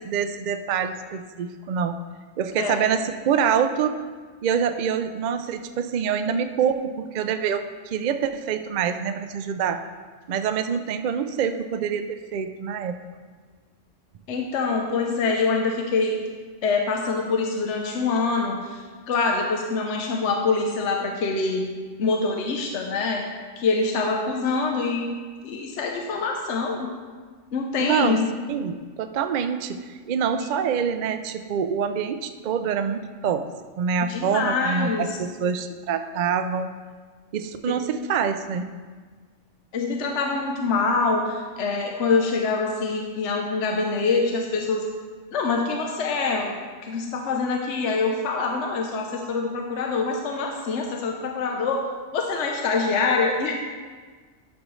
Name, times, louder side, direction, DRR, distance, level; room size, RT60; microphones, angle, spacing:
voice 1, 0.0-2.0 2.4-4.0 4.4-9.8 10.3-13.0 27.8-28.2 28.5-33.5 33.8-36.7 37.3-38.7, right 7 dB, 70° right, 8 dB, 0.4 m, -26 dB
voice 2, 2.6-2.9 14.3-16.2 16.6-21.7 22.0-23.3 23.6-25.1 25.4-26.9 27.5-28.4 34.1-35.2 39.7-44.9 45.3-46.6 46.8-51.8 52.1-53.5, left 4 dB, 70° left, 1 dB, 1.0 m, -25 dB
11.5 x 6.4 x 3.1 m, 1.5 s
omnidirectional pair, 1.3 m